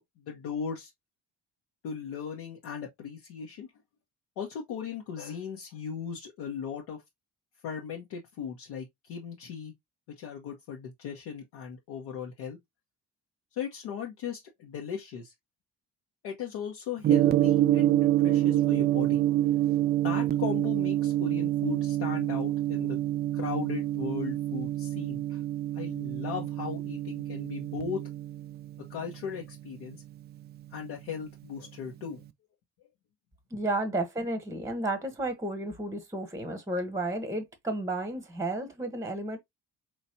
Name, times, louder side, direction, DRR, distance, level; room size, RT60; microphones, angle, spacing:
voice 1, 0.3-0.9 1.8-3.7 4.4-7.0 7.6-9.7 10.2-12.6 13.5-15.3 16.2-19.2 20.0-23.0 23.3-25.4 25.7-28.0 28.9-30.0 30.7-32.2, left 7 dB, 55° left, 1.0 m, -37 dB
Gong, 17.0-31.2, right 13 dB, 25° right, 0.3 m, -27 dB
voice 2, 33.5-39.4, right 2 dB, 5° right, 1.0 m, -32 dB
4.4 x 3.1 x 2.7 m
figure-of-eight pair, 45°, 50 cm